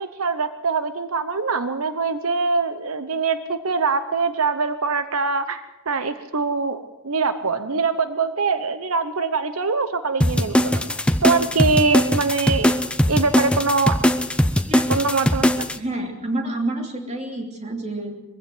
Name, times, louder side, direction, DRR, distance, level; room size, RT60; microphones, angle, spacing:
voice 1, 0.0-10.9 11.2-12.8 13.1-14.0 14.9-15.5, right 4 dB, 85° right, 11 dB, 1.0 m, -23 dB
sound 1, 10.2-15.8, equal, 5° left, 0.7 m, -20 dB
voice 2, 15.8-18.1, right 2 dB, 30° right, 2 dB, 3.0 m, -28 dB
23.0 x 15.5 x 8.0 m, 1.0 s
head